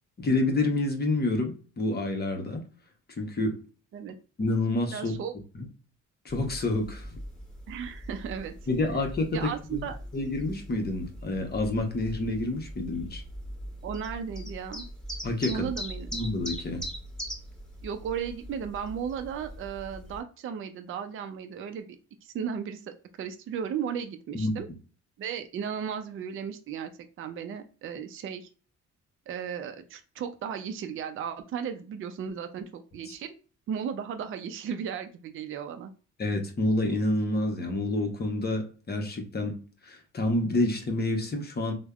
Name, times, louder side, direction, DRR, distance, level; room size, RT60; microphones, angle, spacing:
voice 1, 0.2-2.7 3.2-3.6 4.4-5.1 5.5-5.7 6.2-7.1 8.7-9.8 10.1-13.2 15.2-15.7 16.1-16.9 24.3-24.5 33.1-33.2 36.2-41.7, left 2 dB, 35° left, 0.8 m, -28 dB
voice 2, 4.9-5.3 7.7-8.5 9.3-10.0 13.8-14.9 15.5-16.1 17.8-21.9 22.2-24.7 25.2-26.9 27.2-28.5 29.3-33.3 33.7-35.9, right 7 dB, 45° right, 0.4 m, -35 dB
sound 1, 6.3-20.2, equal, ahead, 1.3 m, -41 dB
3.3 x 2.1 x 2.3 m
cardioid pair, 90°, 30 cm